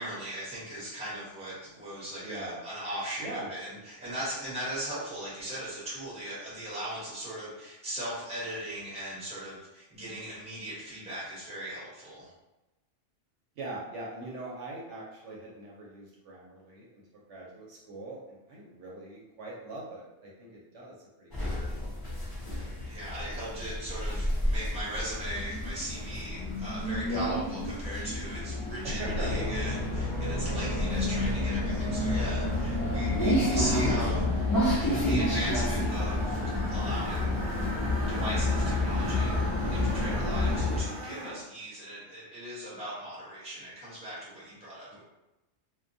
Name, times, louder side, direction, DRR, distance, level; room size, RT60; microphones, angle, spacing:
voice 1, 0.0-12.3 22.6-34.5 34.8-36.4 36.7-37.4 38.0-39.3 39.7-45.0, right 1 dB, 5° right, -9 dB, 0.8 m, -38 dB
voice 2, 2.2-2.6 3.2-3.5 13.6-17.0 17.3-21.8 27.1-27.4 28.8-29.5 30.3-30.5 33.3-33.7, right 2 dB, 70° right, -4 dB, 0.9 m, -41 dB
sound 1, 21.3-40.8, left 1 dB, 30° left, 0.4 m, -30 dB
sound 2, 29.0-34.5, left 1 dB, 60° left, 1.0 m, -35 dB
Screech, 35.9-41.4, right 1 dB, 55° right, 0.5 m, -41 dB
2.3 x 2.2 x 2.6 m, 1.0 s
omnidirectional pair, 1.3 m